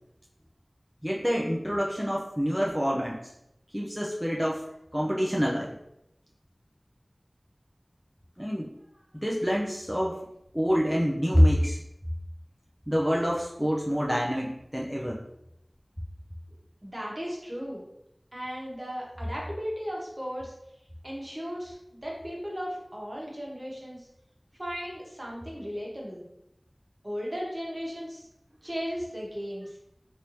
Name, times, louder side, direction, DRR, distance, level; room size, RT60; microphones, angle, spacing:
voice 1, 1.0-3.2 3.7-4.7 4.9-5.7 8.4-8.7 9.1-10.2 10.5-11.8 12.9-15.2, equal, ahead, -3 dB, 0.5 m, -26 dB
voice 2, 16.8-17.8 18.3-20.5 21.0-24.0 24.6-26.2 27.0-28.2 28.6-29.7, equal, 35° right, -3 dB, 1.1 m, -36 dB
3.3 x 2.7 x 3.1 m, 0.80 s
wide cardioid pair, 40°, 0 cm